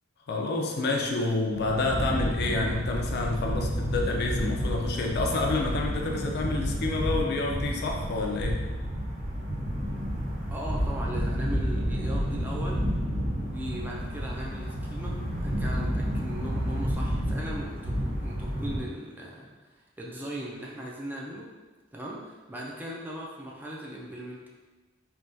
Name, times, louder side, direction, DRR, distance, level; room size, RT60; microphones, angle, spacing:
voice 1, 0.3-8.6, left 3 dB, 55° left, 1 dB, 0.4 m, -28 dB
sound 1, 1.5-18.8, equal, 40° right, 0.8 m, -30 dB
voice 2, 10.5-12.9 13.4-19.5 19.7-21.5 21.9-24.5, right 1 dB, 10° right, -3 dB, 0.3 m, -39 dB
3.4 x 2.2 x 2.6 m, 1.3 s
head